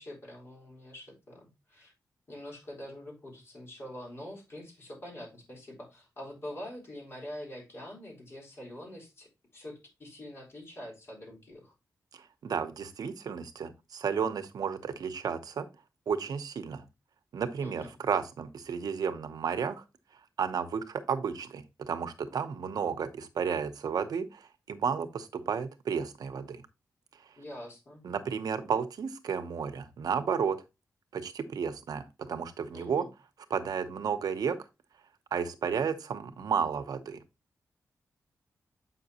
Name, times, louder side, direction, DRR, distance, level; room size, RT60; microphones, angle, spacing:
voice 1, 0.0-1.9 2.3-11.7 17.6-17.9 27.4-28.0 32.7-33.1, left 1 dB, 40° left, -3 dB, 3.8 m, -45 dB
voice 2, 12.4-15.7 16.1-16.8 17.3-19.8 20.4-26.6 28.0-30.6 31.1-33.0 33.5-34.6 35.3-37.2, right 6 dB, 80° right, 10 dB, 0.9 m, -32 dB
8.1 x 5.8 x 2.9 m, 0.25 s
wide cardioid pair, 180°, 7 cm